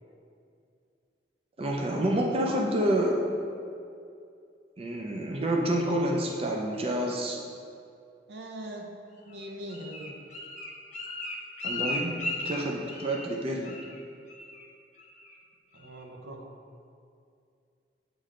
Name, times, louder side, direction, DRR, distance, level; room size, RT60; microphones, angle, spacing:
voice 1, 1.6-3.2 4.8-7.4 11.6-12.2 12.4-13.8, right 1 dB, 35° right, -1 dB, 0.5 m, -28 dB
voice 2, 8.3-8.9 9.3-10.2 15.7-16.5, right 1 dB, 75° right, 2 dB, 0.7 m, -41 dB
Bird, 9.3-13.4 13.6-14.0 14.3-14.6 15.0-15.4 15.8-15.9, left 2 dB, 45° left, 0.8 m, -36 dB
8.4 x 3.2 x 3.8 m, 2.4 s
head